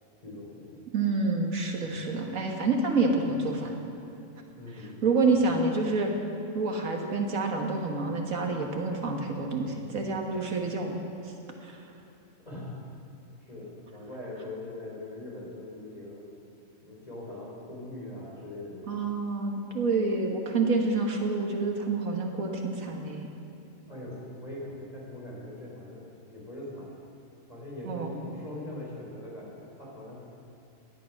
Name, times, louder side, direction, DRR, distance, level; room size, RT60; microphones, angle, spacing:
voice 1, 0.2-0.8 1.8-2.0 4.6-5.5 10.5-10.6 11.5-11.6 12.4-12.7 13.4-16.2 16.8-19.0 23.9-26.9 27.5-30.1, left 1 dB, 30° left, -4 dB, 4.2 m, -41 dB
voice 2, 0.9-3.8 5.0-6.1 6.5-11.3 11.6-11.9 18.9-23.3 27.9-28.1, right 3 dB, 80° right, 2 dB, 1.9 m, -28 dB
17.0 x 11.5 x 5.9 m, 2.9 s
omnidirectional pair, 1.4 m